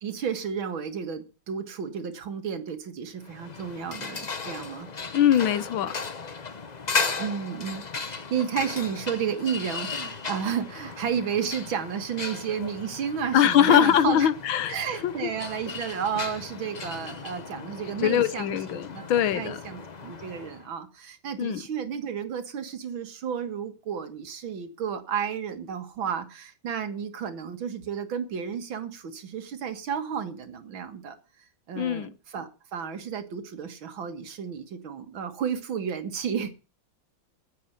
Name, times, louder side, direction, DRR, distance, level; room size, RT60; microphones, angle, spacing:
voice 1, 0.0-4.9 7.2-14.3 14.7-31.2 31.7-36.5, right 7 dB, 85° right, 2.4 m, -32 dB
sound 1, 3.2-20.7, left 4 dB, 35° left, 0.7 m, -36 dB
voice 2, 5.1-5.9 13.3-14.8 15.0-15.3 18.0-19.6 21.4-21.6 31.8-32.1, left 10 dB, 85° left, 1.8 m, -22 dB
9.5 x 7.9 x 9.3 m
omnidirectional pair, 2.1 m